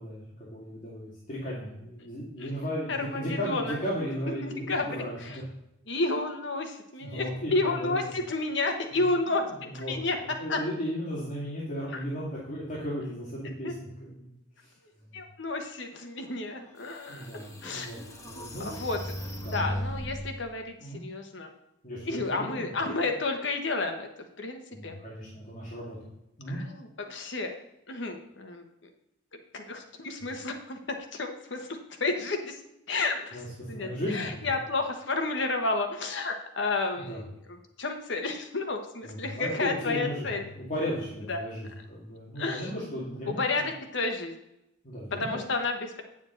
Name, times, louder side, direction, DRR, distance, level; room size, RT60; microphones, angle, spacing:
voice 1, 0.0-5.4 7.0-7.9 8.9-9.0 9.3-9.4 9.7-9.9 10.2-14.3 14.6-14.7 17.1-18.7 19.4-19.6 20.8-21.1 21.8-22.7 24.7-26.0 26.4-26.6 33.3-34.5 37.0-37.2 39.0-40.3 40.5-43.4 44.8-45.4, equal, 40° left, -7 dB, 2.2 m, -35 dB
voice 2, 2.9-3.8 4.4-5.4 5.9-9.4 9.7-10.2 10.5-10.6 13.6-13.7 15.1-17.3 17.6-18.0 18.6-19.0 19.4-21.5 22.0-24.1 24.4-25.0 26.5-27.6 27.9-28.6 29.3-32.6 32.9-40.4 41.3-41.4 42.4-42.7 43.3-44.3 45.2-46.0, left 3 dB, 65° left, 4 dB, 1.2 m, -31 dB
sound 1, 16.6-16.7 17.2-20.3, equal, 15° left, 1.1 m, -36 dB
8.9 x 7.2 x 3.9 m, 0.85 s
head